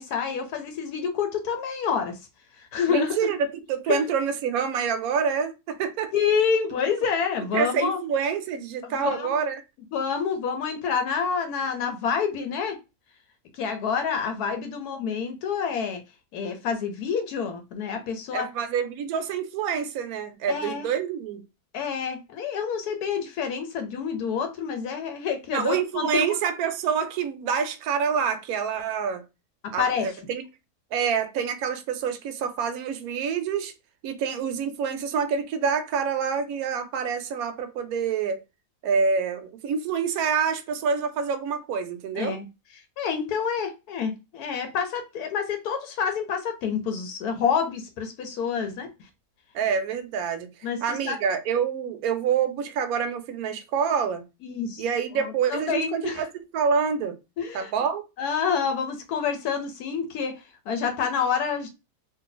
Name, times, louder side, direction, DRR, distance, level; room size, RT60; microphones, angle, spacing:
voice 1, 0.0-2.2 2.6-3.2 3.9-4.0 6.1-8.0 8.8-9.3 9.9-12.8 13.5-16.0 16.3-18.5 20.5-20.9 21.7-26.3 29.8-30.1 42.1-42.5 43.0-48.9 50.6-51.2 54.4-54.9 55.2-56.2 57.4-57.7 58.2-60.4 60.7-61.7, left 6 dB, 80° left, 1.1 m, -28 dB
voice 2, 2.9-6.1 7.5-9.6 18.3-21.4 25.5-29.2 29.7-30.4 30.9-33.7 34.0-38.4 38.8-42.4 49.5-50.5 50.8-54.2 54.8-56.3 56.5-57.1 57.5-58.0, right 6 dB, 75° right, 1.0 m, -27 dB
2.6 x 2.5 x 3.8 m
omnidirectional pair, 1.7 m